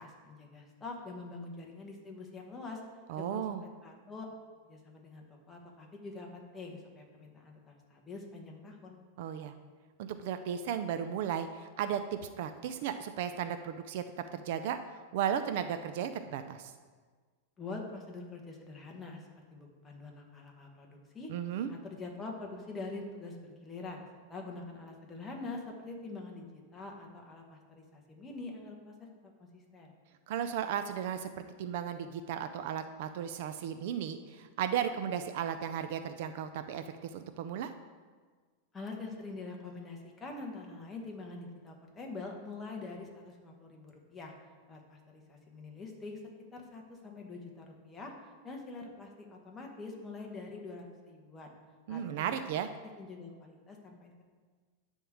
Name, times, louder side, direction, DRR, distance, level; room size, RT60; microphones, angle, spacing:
voice 1, 0.0-2.8 3.3-4.2 4.6-9.0 17.6-21.3 21.7-24.0 24.3-26.5 26.7-28.9 29.2-29.9 38.7-44.3 44.7-46.2 46.5-48.1 48.4-51.5 51.9-52.2 53.0-54.2, left 3 dB, 10° left, 0 dB, 1.1 m, -45 dB
voice 2, 3.1-3.6 9.2-9.5 10.0-14.0 14.3-16.7 21.3-21.7 30.3-31.3 31.6-37.7 51.9-52.7, right 9 dB, 50° right, 9 dB, 0.4 m, -35 dB
10.0 x 3.6 x 7.3 m, 1.5 s
supercardioid pair, 170°, 0 cm